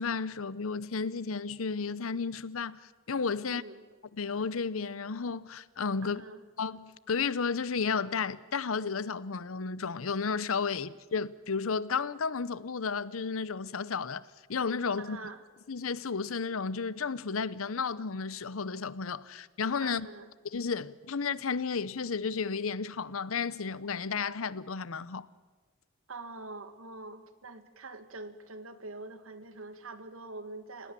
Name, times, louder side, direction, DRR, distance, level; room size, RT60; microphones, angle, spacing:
voice 1, 0.0-2.8 3.1-3.6 4.2-6.2 6.6-15.2 15.7-20.1 20.5-25.3, left 5 dB, 90° left, 0.8 m, -33 dB
voice 2, 3.4-3.8 6.0-6.4 10.7-10.8 15.0-15.4 19.8-20.3 26.1-30.9, right 3 dB, 85° right, 1.8 m, -45 dB
29.5 x 17.0 x 7.5 m
head